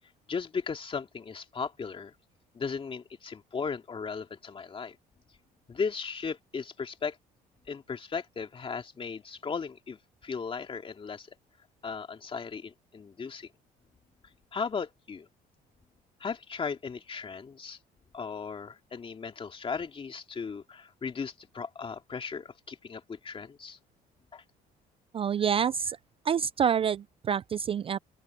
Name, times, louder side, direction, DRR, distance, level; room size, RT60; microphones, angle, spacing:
voice 1, 0.3-2.1 2.5-5.0 5.7-7.2 7.7-11.3 11.8-13.5 14.5-15.3 16.2-17.8 18.1-23.8 24.3-24.4, left 5 dB, 30° left, 2.6 m, -36 dB
voice 2, 25.1-26.0 26.2-28.0, right 7 dB, 35° right, 0.4 m, -27 dB
open air
cardioid pair, 110°, 17 cm